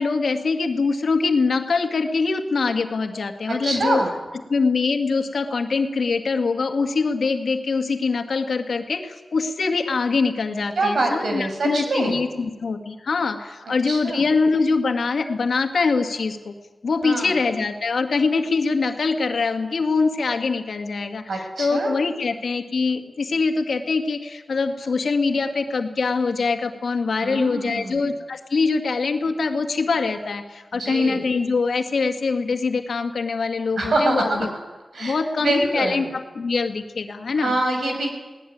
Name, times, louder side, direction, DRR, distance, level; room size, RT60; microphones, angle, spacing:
voice 1, 0.0-4.0 4.5-16.5 16.8-34.5 35.0-37.6, left 4 dB, 80° left, 5 dB, 2.0 m, -23 dB
voice 2, 3.5-4.1 10.8-12.2 13.9-14.2 17.0-17.3 21.3-21.9 27.2-28.0 30.7-31.2 33.8-34.5 34.9-36.1 37.4-38.1, right 2 dB, 80° right, 3 dB, 6.2 m, -25 dB
21.0 x 18.5 x 9.5 m, 1.2 s
wide cardioid pair, 80°, 0 cm